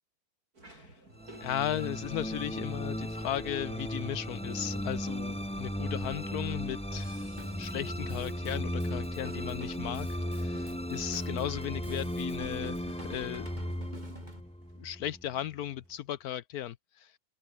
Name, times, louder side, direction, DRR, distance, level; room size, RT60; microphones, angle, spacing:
sound 1, 0.5-16.1, right 2 dB, 70° right, 7.6 m, -57 dB
voice 1, 0.6-0.9 1.4-7.3 7.6-13.5 14.8-17.1, left 11 dB, 75° left, 1.2 m, -36 dB
sound 2, 1.2-15.5, equal, 5° left, 2.6 m, -36 dB
Drum kit / Drum, 6.9-14.4, right 1 dB, 25° right, 6.2 m, -51 dB
omnidirectional pair, 1.6 m